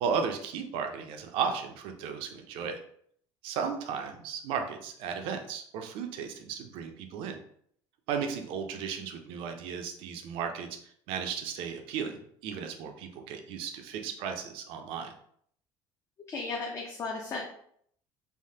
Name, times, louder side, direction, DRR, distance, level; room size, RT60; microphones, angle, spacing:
voice 1, 0.0-2.8 3.4-7.4 8.1-10.7 11.1-15.1, right 6 dB, 65° right, 5 dB, 0.5 m, -35 dB
voice 2, 16.3-17.4, left 3 dB, 30° left, -1 dB, 0.4 m, -35 dB
3.3 x 2.1 x 2.7 m, 0.65 s
cardioid pair, 145°, 10 cm